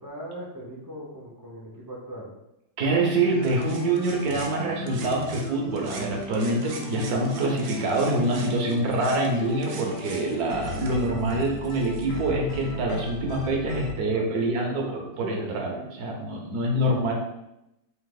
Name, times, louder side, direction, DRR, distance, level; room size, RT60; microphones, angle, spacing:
voice 1, 0.0-2.3 14.0-15.9, right 1 dB, 30° right, -5 dB, 0.3 m, -39 dB
voice 2, 2.8-17.1, right 2 dB, 65° right, 0 dB, 1.2 m, -25 dB
sound 1, 3.1-13.9, left 1 dB, 75° left, 1.4 m, -37 dB
sound 2, 3.4-5.5 5.8-12.1, right 4 dB, 85° right, 1.3 m, -44 dB
3.5 x 2.9 x 3.8 m, 0.86 s
omnidirectional pair, 1.9 m